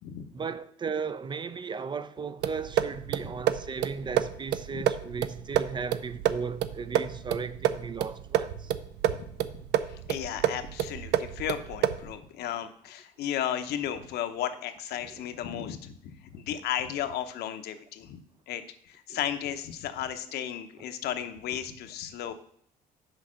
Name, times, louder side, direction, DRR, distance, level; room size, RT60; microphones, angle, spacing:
voice 1, 0.3-8.7 15.1-15.3 19.1-19.2, right 5 dB, 25° right, 0.4 m, -36 dB
sound 1, 2.4-12.2, right 11 dB, 85° right, 0.5 m, -29 dB
voice 2, 10.1-18.2 18.5-18.6 18.9-22.3, left 10 dB, 75° left, 0.8 m, -34 dB
6.5 x 4.8 x 6.2 m
cardioid pair, 110°, 17 cm